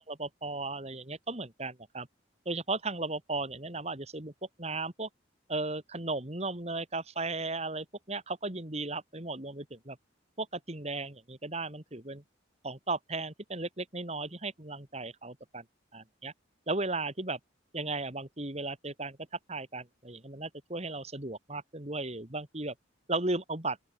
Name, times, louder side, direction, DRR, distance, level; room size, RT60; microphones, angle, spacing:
voice 1, 0.1-2.1 2.5-4.3 4.6-5.1 5.5-10.0 10.4-12.2 12.6-15.6 15.9-16.3 16.7-17.4 17.7-19.2 19.5-22.7 23.1-23.8, right 3 dB, 35° right, 2.6 m, -35 dB
open air
head